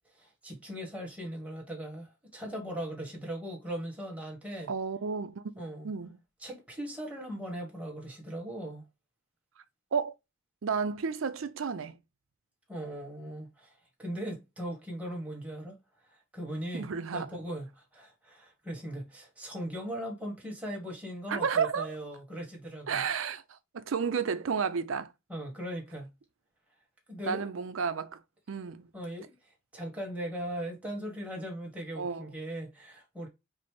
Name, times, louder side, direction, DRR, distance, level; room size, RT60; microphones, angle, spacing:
voice 1, 0.1-4.7 5.6-5.9 6.4-8.9 12.7-15.8 16.1-23.0 25.3-26.1 27.1-27.5 28.9-29.3 29.7-33.3, right 1 dB, 5° right, 1.4 m, -39 dB
voice 2, 4.7-6.2 9.9-10.1 10.6-12.0 16.7-17.3 21.3-21.9 22.9-25.1 27.3-28.2 28.5-28.9 32.0-32.3, right 6 dB, 80° right, 0.5 m, -32 dB
5.3 x 2.1 x 3.0 m
head